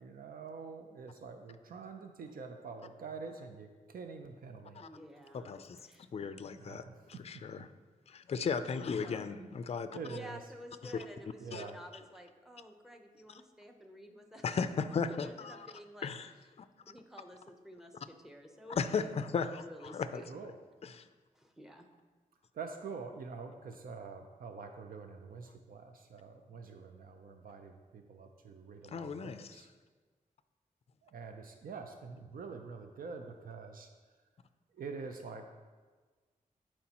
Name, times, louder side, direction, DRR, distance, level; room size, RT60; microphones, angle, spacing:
voice 1, 0.0-4.8 6.5-7.0 9.3-10.4 11.4-11.8 20.3-20.6 22.5-29.7 31.0-34.1 34.7-35.5, right 5 dB, 80° right, 5 dB, 0.5 m, -46 dB
voice 2, 4.8-5.6 5.8-6.1 9.0-9.3 10.1-14.4 15.1-16.1 16.9-20.3 21.3-21.9, equal, 5° right, 4 dB, 0.7 m, -51 dB
voice 3, 5.3-5.8 6.1-6.8 7.3-7.6 8.1-9.9 10.8-10.9 11.5-11.6 14.4-15.5 16.0-16.3 16.6-16.7 18.7-20.2 28.9-29.5, left 5 dB, 45° left, 11 dB, 0.4 m, -35 dB
11.0 x 4.4 x 2.9 m, 1.4 s
wide cardioid pair, 100°, 14 cm